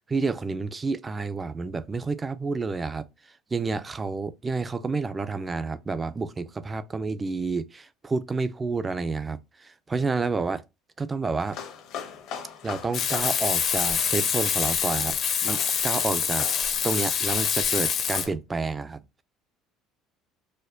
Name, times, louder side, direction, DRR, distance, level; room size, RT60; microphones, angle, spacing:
voice 1, 0.0-10.6 11.0-11.6 12.6-16.5 16.8-19.0, right 4 dB, 20° right, 0.3 m, -30 dB
sound 1, 11.4-18.3, left 7 dB, 70° left, 1.1 m, -41 dB
Frying (food), 12.9-18.2, left 7 dB, 45° left, 0.6 m, -25 dB
4.2 x 2.4 x 2.6 m
cardioid pair, 125°, 0 cm